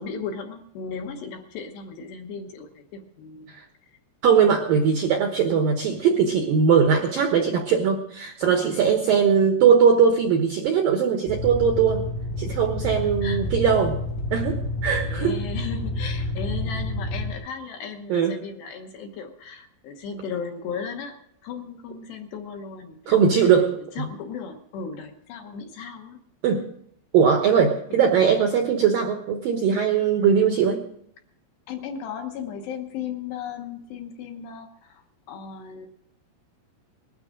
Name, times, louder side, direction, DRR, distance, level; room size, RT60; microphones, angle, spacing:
voice 1, 0.0-3.6 3.9-4.0 13.2-13.5 15.0-21.2 21.4-23.2 24.0-26.2 27.9-28.0 31.7-35.9, left 6 dB, 70° left, 4 dB, 2.8 m, -36 dB
voice 2, 4.2-12.0 12.4-14.0 14.3-15.4 18.1-18.4 23.1-23.8 26.4-26.6 27.1-30.8, right 7 dB, 75° right, 4 dB, 2.1 m, -20 dB
sound 1, 11.3-17.3, left 1 dB, 90° left, 4.5 m, -29 dB
20.0 x 13.0 x 3.8 m, 0.70 s
omnidirectional pair, 5.8 m